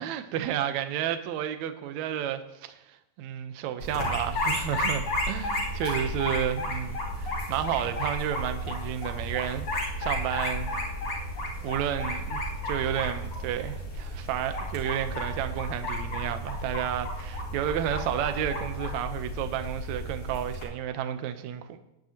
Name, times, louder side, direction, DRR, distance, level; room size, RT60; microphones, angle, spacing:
voice 1, 0.0-10.7 11.6-21.8, right 10 dB, 70° right, 9 dB, 1.9 m, -31 dB
sound 1, 3.8-20.6, equal, 45° left, 5.0 m, -33 dB
20.0 x 10.5 x 2.9 m, 0.95 s
omnidirectional pair, 4.1 m